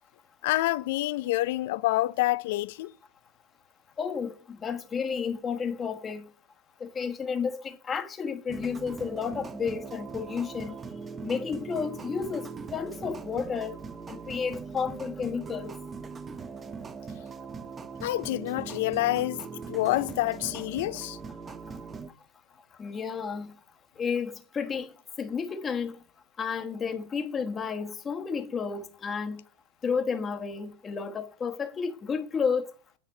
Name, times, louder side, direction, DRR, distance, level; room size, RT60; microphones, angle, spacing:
voice 1, 0.4-2.9 18.0-19.4 19.7-21.2, left 17 dB, 65° left, 0.5 m, -27 dB
voice 2, 4.0-6.2 6.8-10.8 11.2-13.8 14.1-15.7 22.8-23.5 24.0-24.9 25.2-26.0 26.4-29.4 29.8-32.7, left 6 dB, 25° left, 1.3 m, -32 dB
sound 1, 8.5-22.1, right 5 dB, 20° right, 0.7 m, -40 dB
9.4 x 5.8 x 6.5 m
hypercardioid pair, 105°, 0 cm